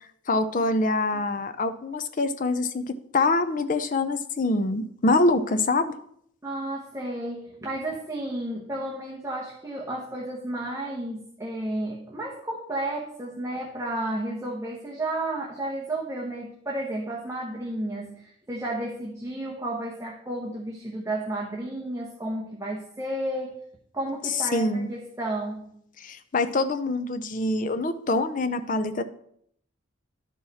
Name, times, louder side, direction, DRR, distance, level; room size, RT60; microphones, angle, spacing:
voice 1, 0.3-5.9 24.5-24.9 26.0-29.0, left 2 dB, 40° left, 10 dB, 0.5 m, -25 dB
voice 2, 6.4-23.6 23.9-25.7, right 1 dB, 15° right, -3 dB, 1.0 m, -32 dB
11.5 x 4.8 x 4.1 m, 0.69 s
head